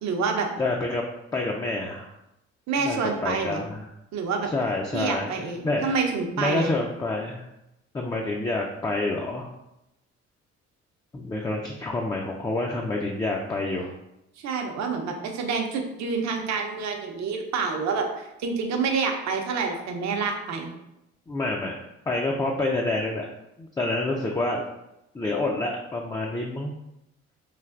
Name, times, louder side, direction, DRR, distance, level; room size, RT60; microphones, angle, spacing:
voice 1, 0.0-0.5 2.7-3.6 4.1-4.5 4.9-6.7 14.4-20.7, right 5 dB, 60° right, 3 dB, 0.6 m, -28 dB
voice 2, 0.6-1.0 1.3-2.1 2.8-3.9 4.5-6.0 6.4-7.4 7.9-9.5 11.1-13.9 21.3-21.8 22.1-23.3 23.6-24.7 25.1-26.7, left 2 dB, 15° left, 0 dB, 0.3 m, -28 dB
3.2 x 2.4 x 2.4 m, 0.87 s
supercardioid pair, 60°, 31 cm